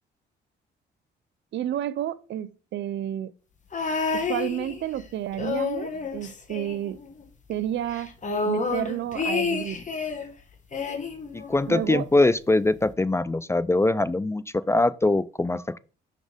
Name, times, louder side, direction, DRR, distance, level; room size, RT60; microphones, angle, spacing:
voice 1, 1.5-3.3 4.1-7.0 7.5-8.1 8.5-9.8 11.7-12.1, right 11 dB, 65° right, 0.5 m, -31 dB
sound 1, 3.7-5.0 5.3-7.2 7.5-7.6 7.9-10.3 10.7-12.0 12.8-12.9, left 4 dB, 40° left, 1.5 m, -30 dB
voice 2, 11.3-15.8, left 2 dB, 15° left, 0.4 m, -23 dB
6.0 x 4.2 x 5.0 m
cardioid pair, 90°, 20 cm